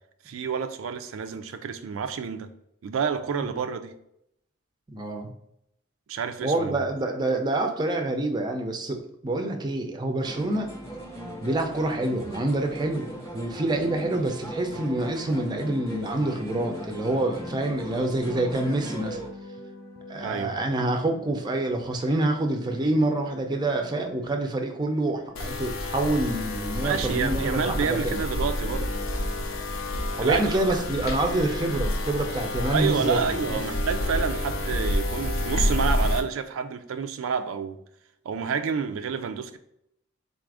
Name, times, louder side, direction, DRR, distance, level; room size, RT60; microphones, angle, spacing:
voice 1, 0.3-2.5 2.8-3.9 6.1-6.8 20.2-20.6 26.8-29.0 30.2-30.6 32.7-37.8 38.3-39.6, right 6 dB, 80° right, 0.4 m, -29 dB
voice 2, 4.9-5.3 6.4-10.7 11.4-19.2 20.1-28.2 30.2-33.2 33.5-33.6, right 2 dB, 20° right, 0.5 m, -27 dB
sound 1, 10.2-19.3, equal, 15° left, 0.7 m, -38 dB
sound 2, 14.0-29.7, left 1 dB, 50° left, 0.8 m, -47 dB
sound 3, 25.4-36.2, left 1 dB, 90° left, 0.6 m, -29 dB
4.0 x 2.4 x 4.7 m
head